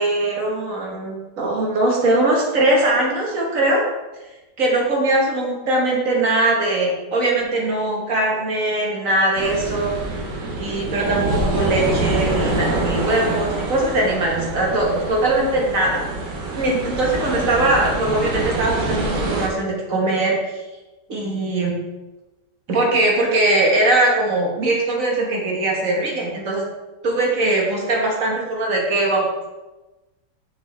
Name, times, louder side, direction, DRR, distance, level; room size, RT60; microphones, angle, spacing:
voice 1, 0.0-3.8 4.6-9.9 10.5-16.0 16.6-20.6 21.1-21.8 22.7-26.6 27.0-29.5, right 2 dB, 50° right, -2 dB, 1.8 m, -21 dB
sound 1, 9.4-19.5, right 2 dB, 90° right, 1.7 m, -25 dB
6.7 x 6.0 x 3.3 m, 1.1 s
omnidirectional pair, 1.9 m